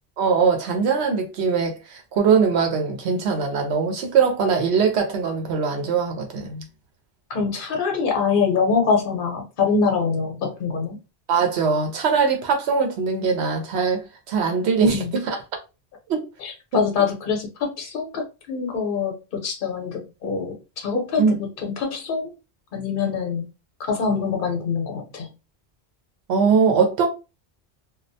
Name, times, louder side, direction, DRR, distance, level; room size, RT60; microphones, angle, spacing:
voice 1, 0.2-6.6 11.3-15.4 16.1-16.2 16.7-16.8 21.2-21.3 26.3-27.1, right 5 dB, 80° right, 0.8 m, -21 dB
voice 2, 7.3-11.0 14.9-15.1 16.4-22.3 22.7-23.5 23.8-25.3, left 5 dB, 55° left, 0.9 m, -24 dB
2.3 x 2.0 x 2.6 m
omnidirectional pair, 1.1 m